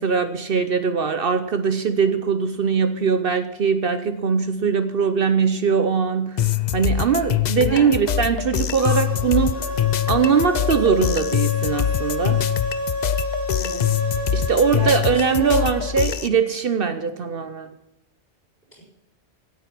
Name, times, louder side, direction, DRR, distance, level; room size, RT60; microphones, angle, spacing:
voice 1, 0.0-6.5 6.7-9.6 10.1-12.4 14.3-17.7, right 6 dB, 55° right, 10 dB, 0.9 m, -21 dB
sound 1, 6.4-16.3, left 10 dB, 50° left, 0.5 m, -24 dB
voice 2, 7.6-7.9 13.5-13.8 14.4-15.7 18.7-18.8, right 1 dB, 10° left, -4 dB, 5.6 m, -33 dB
sound 2, 8.8-16.0, left 1 dB, 15° right, 2.0 m, -29 dB
17.0 x 8.8 x 6.0 m, 0.89 s
omnidirectional pair, 1.2 m